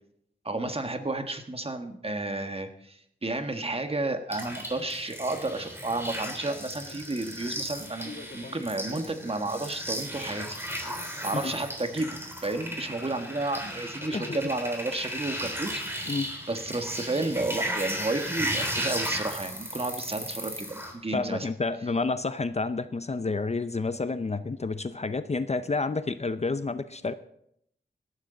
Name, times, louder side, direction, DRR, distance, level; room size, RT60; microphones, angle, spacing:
voice 1, 0.4-10.6 11.2-16.2 16.5-21.5, right 2 dB, 30° right, 7 dB, 1.5 m, -32 dB
sound 1, 4.3-20.9, equal, 10° right, 3.8 m, -35 dB
sound 2, 6.8-14.4, left 3 dB, 55° left, 1.3 m, -47 dB
voice 2, 21.1-27.1, left 3 dB, 35° left, 12 dB, 0.6 m, -29 dB
18.0 x 13.0 x 3.9 m, 0.72 s
wide cardioid pair, 70°, 19 cm